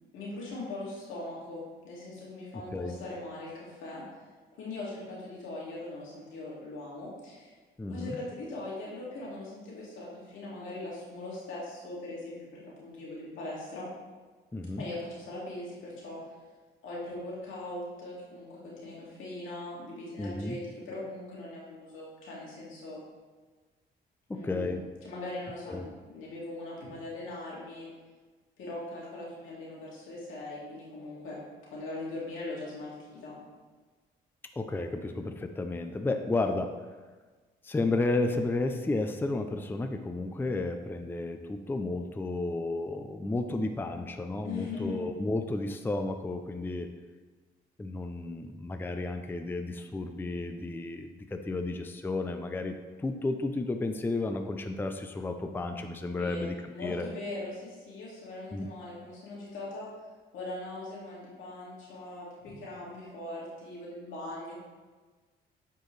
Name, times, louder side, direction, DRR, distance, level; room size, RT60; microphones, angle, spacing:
voice 1, 0.1-4.0 4.6-7.5 7.9-12.5 12.8-13.9 14.8-16.2 16.8-23.0 24.3-27.9 28.6-31.4 31.7-33.4 44.4-45.0 56.2-59.9 60.3-64.6, left 2 dB, 90° left, -6 dB, 2.2 m, -40 dB
voice 2, 2.5-3.0 7.8-8.2 14.5-14.8 20.2-20.6 24.3-24.8 25.7-25.9 34.6-36.7 37.6-46.9 47.8-56.5 56.8-57.1 58.5-58.7, left 2 dB, 10° left, 6 dB, 0.4 m, -32 dB
9.0 x 4.5 x 3.2 m, 1.3 s
cardioid pair, 90°, 20 cm